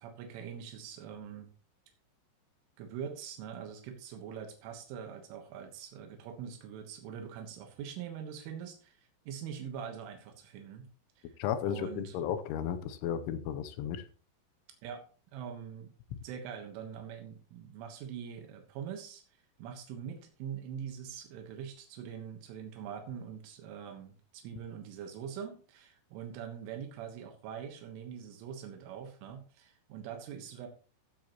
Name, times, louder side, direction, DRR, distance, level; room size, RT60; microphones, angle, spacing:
voice 1, 0.0-1.5 2.8-10.9 11.2-11.4 11.6-12.4 14.8-15.1 15.3-30.7, right 8 dB, 85° right, 5 dB, 3.8 m, -43 dB
voice 2, 11.4-14.0, left 9 dB, 80° left, 11 dB, 3.2 m, -34 dB
15.0 x 9.1 x 3.0 m, 0.37 s
omnidirectional pair, 5.5 m